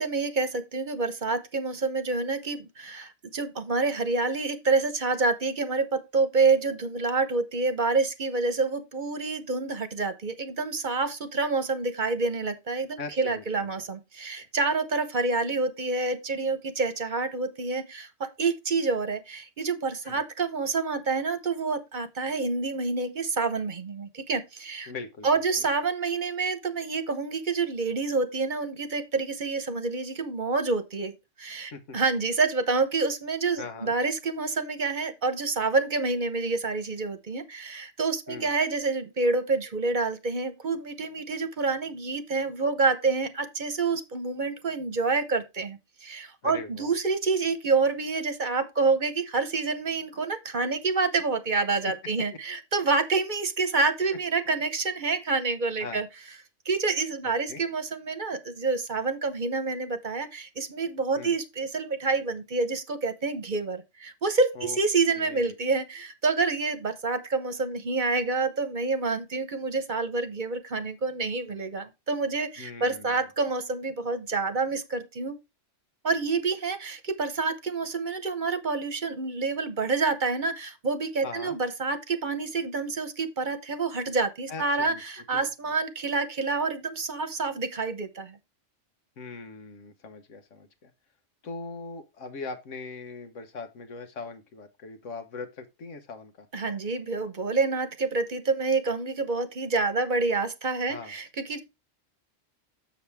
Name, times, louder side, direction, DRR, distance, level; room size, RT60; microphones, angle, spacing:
voice 1, 0.0-24.9 25.2-31.1 31.4-56.1 56.6-75.4 76.0-88.4 96.5-101.6, right 4 dB, 45° right, 1.0 m, -28 dB
voice 2, 13.0-13.7 14.4-14.5 20.0-20.2 24.9-25.3 25.6-25.7 31.7-32.0 33.6-33.9 38.3-38.5 46.4-46.9 55.8-56.0 57.5-57.6 61.2-61.3 64.5-64.8 65.2-65.5 72.6-73.2 81.2-81.6 84.5-85.0 85.3-85.5 89.2-90.9 91.4-96.5 100.9-101.1, left 4 dB, 90° left, 1.5 m, -40 dB
7.2 x 6.6 x 3.4 m
omnidirectional pair, 1.2 m